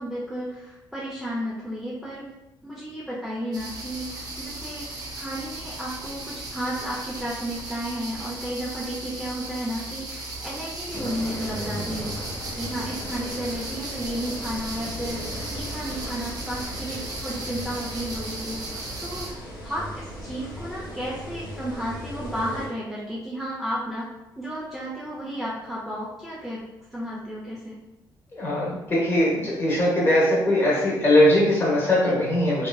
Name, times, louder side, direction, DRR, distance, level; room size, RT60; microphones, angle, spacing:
voice 1, 0.0-2.2 2.6-19.3 19.6-24.1 24.4-26.6 26.9-27.7, equal, 5° right, -7 dB, 0.5 m, -33 dB
sound 1, 3.5-19.3, right 2 dB, 55° right, 0.7 m, -36 dB
sound 2, 10.9-22.7, equal, 65° left, 0.9 m, -37 dB
voice 2, 28.4-32.7, left 1 dB, 30° left, -5 dB, 1.0 m, -20 dB
2.8 x 2.5 x 2.2 m, 0.95 s
cardioid pair, 125°, 8 cm